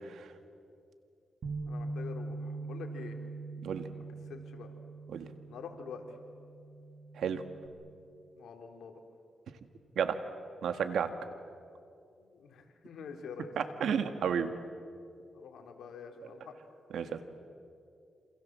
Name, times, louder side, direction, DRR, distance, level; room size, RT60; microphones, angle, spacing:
Bass guitar, 1.4-7.7, right 3 dB, 60° right, 3.3 m, -42 dB
voice 1, 1.7-3.2 3.9-4.0 4.3-4.7 5.5-6.2 8.4-8.9 12.1-13.5 15.3-16.5, left 6 dB, 85° left, 3 dB, 3.4 m, -46 dB
voice 2, 10.6-11.1 13.6-14.5 16.9-17.2, right 7 dB, 80° right, 9 dB, 1.8 m, -31 dB
28.0 x 27.0 x 7.5 m, 2.5 s
cardioid pair, 90°, 0 cm